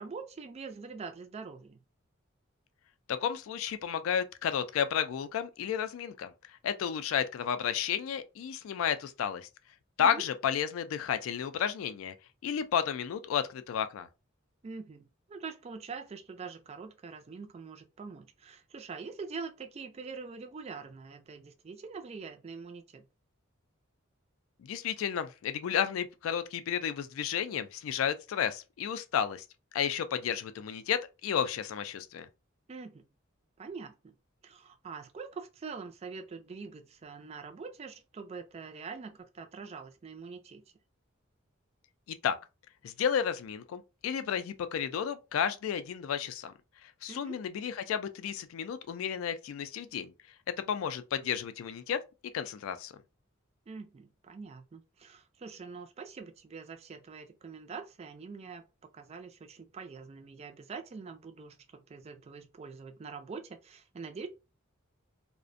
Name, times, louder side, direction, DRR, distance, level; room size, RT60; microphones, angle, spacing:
voice 1, 0.0-1.8 10.0-10.2 14.6-23.1 32.7-33.1 33.6-34.2 34.4-40.6 47.1-47.4 53.7-58.6 58.9-64.3, right 5 dB, 30° right, 0.3 m, -44 dB
voice 2, 3.1-9.5 10.0-12.1 12.4-14.1 24.6-29.4 29.7-32.3 42.1-42.4 42.8-46.5 46.8-50.1 50.6-52.0 52.3-52.9, left 8 dB, 75° left, 0.3 m, -32 dB
2.4 x 2.1 x 2.5 m
head